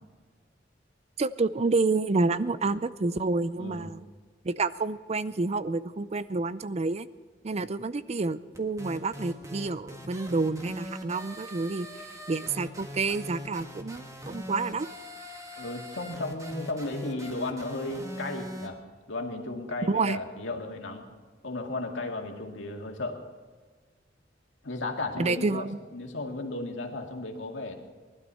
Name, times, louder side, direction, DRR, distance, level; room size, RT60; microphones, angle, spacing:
voice 1, 1.2-4.0 4.4-7.1 7.4-11.9 12.3-14.9 19.9-20.2 25.2-25.8, right 3 dB, 35° right, 15 dB, 0.5 m, -29 dB
voice 2, 3.6-3.9 15.6-18.8 19.1-21.1 21.4-23.2 24.6-25.7 25.9-27.8, left 2 dB, 90° left, 2 dB, 2.1 m, -34 dB
sound 1, 8.5-18.7, equal, 15° right, 1.6 m, -42 dB
19.5 x 12.0 x 5.6 m, 1.4 s
head